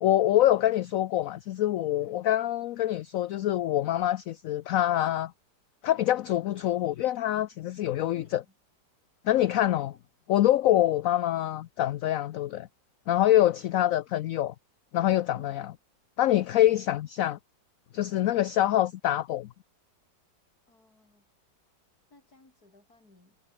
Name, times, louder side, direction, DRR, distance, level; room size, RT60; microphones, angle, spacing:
voice 1, 0.0-5.3 5.8-8.4 9.2-9.9 10.3-12.7 13.1-14.5 14.9-15.6 16.2-17.4 17.9-19.5, left 13 dB, 70° left, 0.8 m, -25 dB
voice 2, 2.0-2.5 8.1-8.5 9.3-9.9 15.3-15.6 16.6-16.8 20.7-21.3 22.1-23.4, left 2 dB, 55° left, 6.0 m, -57 dB
omnidirectional pair, 1.9 m